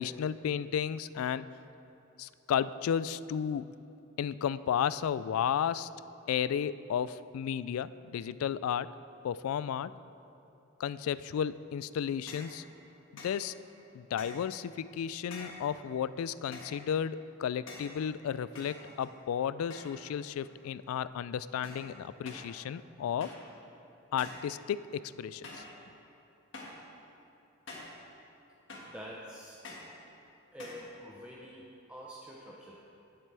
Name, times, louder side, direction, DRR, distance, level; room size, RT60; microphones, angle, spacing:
voice 1, 0.0-1.5 2.2-3.7 4.2-5.9 6.3-8.9 9.2-9.9 10.8-12.6 13.1-13.5 13.9-23.3 24.1-25.6, left 8 dB, 85° left, 16 dB, 0.3 m, -33 dB
sound 1, 12.3-12.6 13.2-13.4 14.2-14.5 15.3-15.7 16.5-16.9 17.7-18.0 18.6-19.2 19.7-20.1 20.4-20.9 21.6-21.9 22.3-22.5 23.2-23.5 24.2-24.5 25.4-25.8 26.5-26.9 27.7-28.0 28.7-29.0 29.6-30.0 30.6-30.9, left 2 dB, 60° left, 1.7 m, -47 dB
voice 2, 28.9-29.6 30.5-32.8, equal, 5° right, -4 dB, 0.7 m, -47 dB
17.5 x 7.6 x 3.4 m, 2.8 s
head